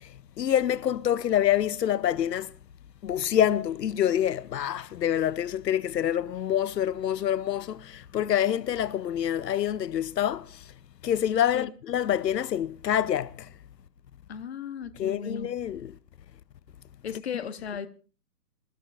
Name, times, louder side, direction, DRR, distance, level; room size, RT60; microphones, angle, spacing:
voice 1, 0.0-2.5 3.0-10.7 11.0-13.5 15.0-16.0, left 10 dB, 90° left, 0.7 m, -26 dB
voice 2, 14.3-15.5 17.0-17.9, left 7 dB, 40° left, 1.0 m, -36 dB
26.5 x 13.5 x 2.5 m
hypercardioid pair, 165°, 48 cm